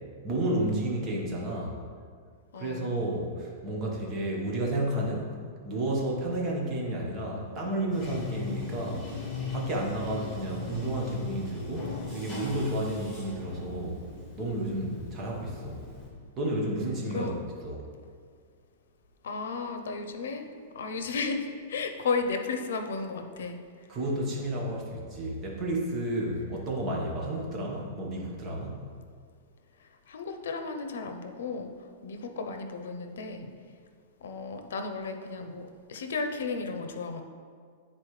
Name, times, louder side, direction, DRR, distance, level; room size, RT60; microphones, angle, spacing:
voice 1, 0.2-1.8 2.5-5.3 5.6-9.1 9.5-14.0 14.4-15.8 16.4-17.3 17.6-17.8 23.9-28.9, right 1 dB, 25° right, -3 dB, 1.2 m, -31 dB
voice 2, 2.5-2.9 17.1-17.3 19.2-20.5 20.7-23.6 30.1-31.7 32.0-33.6 34.2-37.2, left 4 dB, 85° left, 6 dB, 0.7 m, -34 dB
Bathtub (filling or washing), 7.9-16.1, left 4 dB, 10° left, 1.7 m, -39 dB
9.5 x 4.2 x 3.2 m, 2.1 s
supercardioid pair, 160°, 0 cm